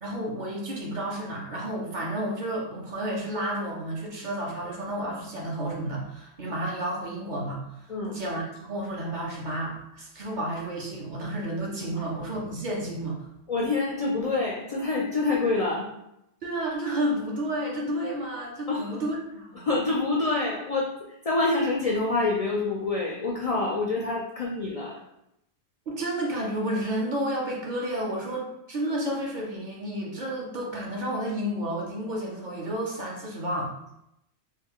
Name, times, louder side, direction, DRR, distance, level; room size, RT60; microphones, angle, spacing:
voice 1, 0.0-13.2 16.4-19.7 25.9-33.7, right 1 dB, 50° right, -3 dB, 0.7 m, -31 dB
voice 2, 13.5-15.9 18.7-18.9 19.6-24.9, left 3 dB, 60° left, -2 dB, 0.4 m, -27 dB
3.2 x 2.3 x 3.6 m, 0.83 s
omnidirectional pair, 1.2 m